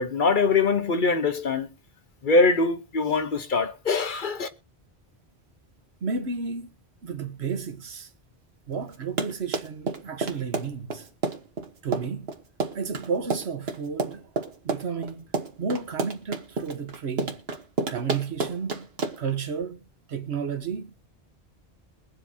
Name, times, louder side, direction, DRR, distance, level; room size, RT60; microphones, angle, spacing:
voice 1, 0.0-1.7 2.2-4.5, left 3 dB, 55° left, 1.1 m, -23 dB
voice 2, 6.0-6.7 7.0-8.1 8.7-11.0 11.8-12.3 12.7-14.3 14.6-15.3 15.6-17.3 17.9-18.9 19.2-19.8 20.1-20.9, right 5 dB, 90° right, 1.4 m, -32 dB
Run, 8.9-19.4, right 4 dB, 70° right, 1.5 m, -30 dB
22.0 x 7.8 x 2.8 m
omnidirectional pair, 1.1 m